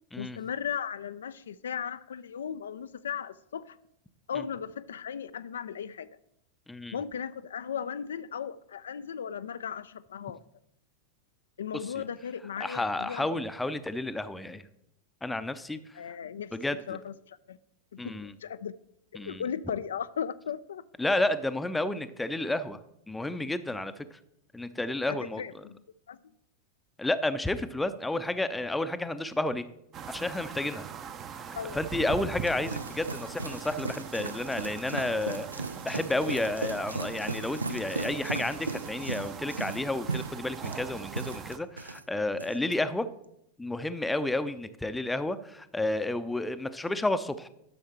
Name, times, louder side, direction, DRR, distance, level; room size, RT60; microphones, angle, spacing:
voice 1, 0.2-3.8 4.3-6.1 6.9-10.4 11.6-13.3 15.9-16.5 16.9-17.6 17.9-18.7 19.1-20.8 25.1-25.8 26.1-26.2 31.6-31.8, left 8 dB, 65° left, 13 dB, 0.3 m, -36 dB
voice 2, 6.7-7.0 12.0-12.1 12.6-14.7 15.2-15.8 16.5-17.0 18.0-18.3 19.1-19.4 21.0-22.8 23.1-24.1 24.5-25.4 27.0-29.6 30.1-30.9 31.4-31.5 31.7-35.5 35.8-43.1 43.6-47.5, left 2 dB, 5° left, 12 dB, 0.6 m, -31 dB
sound 1, 29.9-41.6, right 7 dB, 30° right, 0.7 m, -42 dB
sound 2, 32.3-42.0 42.3-42.7, right 3 dB, 80° right, 0.4 m, -37 dB
12.0 x 6.5 x 4.3 m, 0.80 s
figure-of-eight pair, 90°, 0 cm